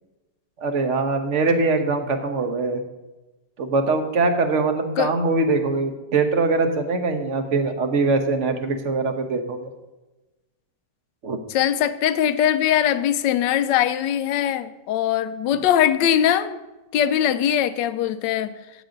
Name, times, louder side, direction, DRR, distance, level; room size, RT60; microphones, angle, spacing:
voice 1, 0.6-2.8 3.6-9.7 11.2-11.4, right 3 dB, 50° right, 7 dB, 1.3 m, -22 dB
voice 2, 11.5-16.6 16.9-18.5, left 10 dB, 85° left, 13 dB, 1.3 m, -21 dB
13.5 x 8.9 x 3.9 m, 1.1 s
omnidirectional pair, 1.9 m